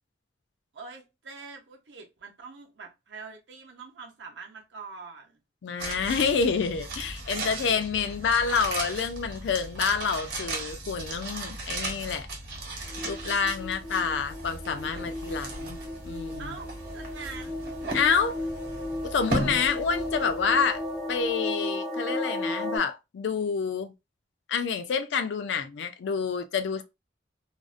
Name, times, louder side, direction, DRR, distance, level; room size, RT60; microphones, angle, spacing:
voice 1, 0.7-5.4 13.8-14.1 16.4-17.7, right 4 dB, 75° right, 0.7 m, -44 dB
voice 2, 5.6-12.3 13.0-15.8 16.0-16.5 17.9-18.4 19.0-20.8 21.1-23.9 24.5-26.8, left 6 dB, 75° left, 0.4 m, -28 dB
sound 1, 5.8-21.0 21.2-21.3, right 2 dB, 60° right, 1.0 m, -36 dB
sound 2, 12.8-22.8, left 1 dB, ahead, 0.4 m, -35 dB
2.5 x 2.0 x 2.4 m
head